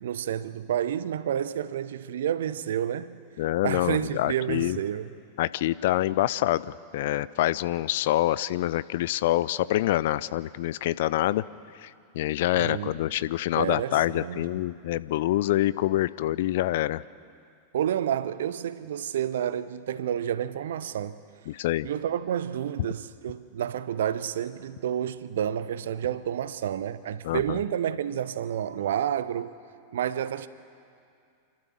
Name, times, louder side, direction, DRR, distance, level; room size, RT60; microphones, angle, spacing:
voice 1, 0.0-3.2 3.6-5.1 12.6-12.9 13.6-14.5 17.7-21.2 21.8-29.5 29.9-30.5, right 10 dB, 60° right, 0.7 m, -30 dB
voice 2, 3.4-4.8 5.4-11.4 11.8-17.0 21.5-21.9 27.2-27.6, left 15 dB, 55° left, 0.4 m, -26 dB
28.5 x 12.5 x 7.4 m
figure-of-eight pair, 90°, 0 cm